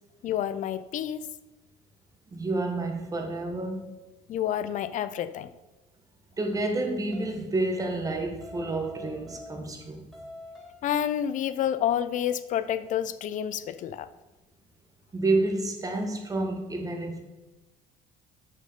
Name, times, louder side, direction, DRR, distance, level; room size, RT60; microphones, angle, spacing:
voice 1, 0.2-1.2 4.3-5.5 10.8-14.1, left 10 dB, 55° left, 0.7 m, -29 dB
voice 2, 2.3-3.9 6.4-10.0 15.1-17.3, right 2 dB, 20° right, 1.6 m, -29 dB
sound 1, 7.1-7.4 8.4-9.8 10.1-11.0, left 1 dB, ahead, 3.2 m, -46 dB
6.9 x 6.2 x 5.6 m
supercardioid pair, 100°, 16 cm